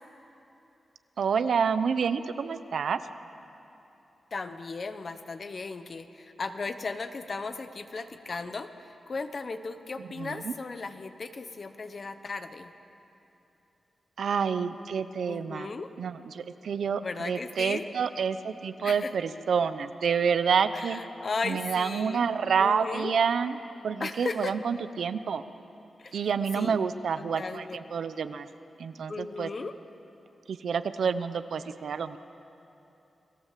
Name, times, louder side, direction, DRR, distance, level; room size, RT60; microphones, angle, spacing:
voice 1, 1.2-3.0 10.1-10.5 14.2-15.7 16.0-21.0 21.4-23.6 23.8-25.4 26.1-28.5 28.8-29.5 30.5-32.2, right 6 dB, 75° right, 11 dB, 0.9 m, -28 dB
voice 2, 4.3-12.7 15.3-15.9 17.0-17.9 18.8-19.1 20.7-22.3 22.6-23.2 24.0-24.6 26.0-26.2 26.5-26.8 27.1-27.8 29.1-29.7, left 4 dB, 40° left, 9 dB, 1.1 m, -36 dB
30.0 x 20.0 x 7.6 m, 2.9 s
wide cardioid pair, 170°, 0 cm